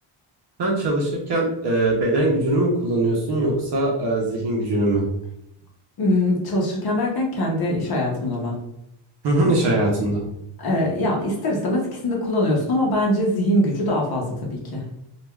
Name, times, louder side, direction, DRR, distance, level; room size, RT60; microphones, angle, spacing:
voice 1, 0.6-5.0 9.2-10.2, right 2 dB, 55° right, -2 dB, 0.7 m, -21 dB
voice 2, 6.0-8.6 10.6-14.8, left 1 dB, 50° left, -2 dB, 0.7 m, -22 dB
3.2 x 2.3 x 2.2 m, 0.81 s
wide cardioid pair, 165°, 48 cm